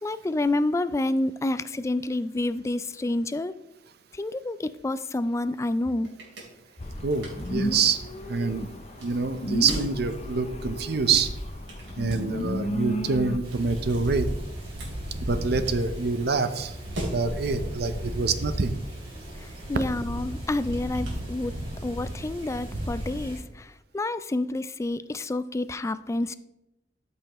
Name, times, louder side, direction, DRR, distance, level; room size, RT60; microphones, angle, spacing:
voice 1, 0.0-3.5 4.1-6.1 19.4-21.5 21.8-26.3, left 2 dB, 15° left, 13 dB, 0.3 m, -28 dB
sound 1, 5.6-21.9, right 1 dB, 90° right, 2.8 m, -44 dB
sound 2, 6.8-13.4, equal, 35° left, 0.7 m, -33 dB
voice 2, 7.0-8.0 8.3-8.7 9.0-11.3 12.0-14.3 15.2-16.7 17.0-18.8, right 4 dB, 60° right, 10 dB, 0.7 m, -26 dB
sound 3, 13.4-23.4, equal, 30° right, 2.4 m, -35 dB
13.0 x 5.6 x 3.0 m, 0.92 s
head